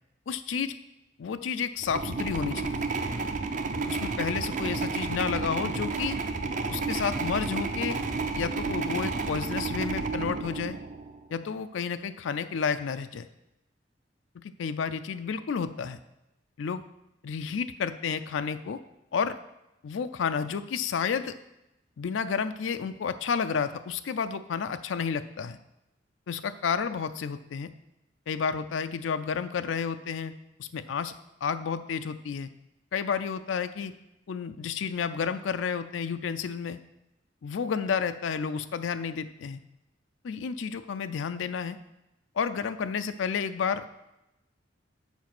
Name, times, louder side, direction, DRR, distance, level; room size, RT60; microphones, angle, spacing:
voice 1, 0.3-0.7 1.2-2.9 3.9-6.2 6.7-8.0 8.3-10.8 11.3-13.3 14.4-16.0 16.6-16.8 17.2-18.8 19.1-19.4 19.8-21.4 22.0-25.6 26.3-27.7 28.3-30.3 30.6-31.1 31.4-32.5 32.9-33.9 34.3-36.8 37.4-39.6 40.2-41.8 42.4-43.9, left 6 dB, 90° left, 10 dB, 0.4 m, -31 dB
sound 1, 1.8-11.2, right 4 dB, 40° right, 0.6 m, -31 dB
7.1 x 5.1 x 5.9 m, 0.90 s
head